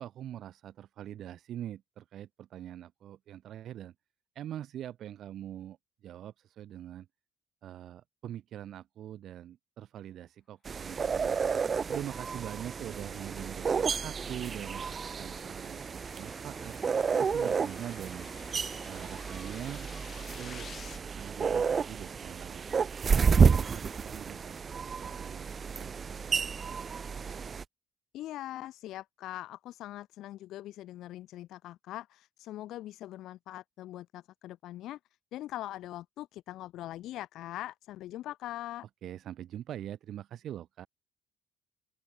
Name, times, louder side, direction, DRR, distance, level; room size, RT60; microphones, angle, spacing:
voice 1, 0.0-3.9 4.3-7.1 7.6-11.4 11.9-16.7 17.2-18.3 18.8-19.9 20.4-20.7 21.0-22.7 23.2-24.5 25.0-25.5 25.7-26.9 39.0-40.9, right 11 dB, 60° right, 0.8 m, -43 dB
sound 1, 10.6-27.6, right 6 dB, 35° right, 0.3 m, -31 dB
sound 2, 12.3-21.0, left 7 dB, 40° left, 4.2 m, -53 dB
voice 2, 28.1-35.0 35.3-38.9, left 14 dB, 70° left, 0.8 m, -42 dB
open air
cardioid pair, 115°, 0 cm